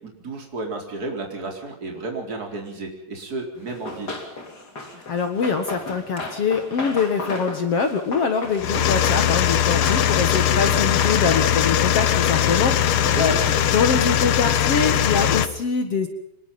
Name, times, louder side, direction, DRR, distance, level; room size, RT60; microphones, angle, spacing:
voice 1, 0.0-4.1 13.1-13.7, right 2 dB, 25° right, 2 dB, 4.4 m, -32 dB
Run, 3.7-11.8, left 2 dB, 30° left, 3.6 m, -35 dB
voice 2, 4.9-13.4 13.7-16.1, left 5 dB, 50° left, 7 dB, 2.4 m, -24 dB
sound 1, 8.6-15.5, left 10 dB, 85° left, 1.1 m, -20 dB
25.0 x 21.0 x 5.6 m, 0.81 s
omnidirectional pair, 3.8 m